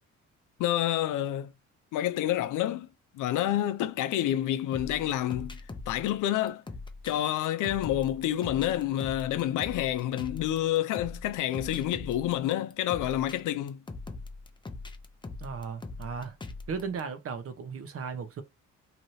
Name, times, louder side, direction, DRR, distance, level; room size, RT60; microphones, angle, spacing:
voice 1, 0.6-1.5 1.9-2.9 3.1-6.6 7.0-13.8, left 12 dB, 85° left, 0.5 m, -28 dB
sound 1, 4.7-17.0, left 3 dB, 15° left, 0.5 m, -42 dB
voice 2, 15.4-16.4 16.7-18.4, right 5 dB, 50° right, 0.8 m, -36 dB
2.9 x 2.6 x 3.1 m
cardioid pair, 90°, 30 cm